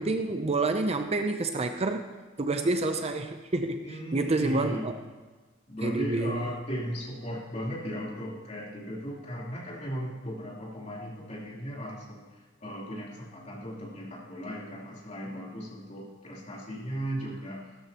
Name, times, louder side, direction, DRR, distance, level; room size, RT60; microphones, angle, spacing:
voice 1, 0.0-2.1 2.4-3.8 4.1-5.0 5.8-6.5, right 2 dB, 30° right, 7 dB, 0.6 m, -28 dB
voice 2, 3.8-4.9 5.7-12.2 12.6-17.6, equal, 35° left, -5 dB, 3.3 m, -37 dB
16.0 x 12.5 x 2.9 m, 1.3 s
head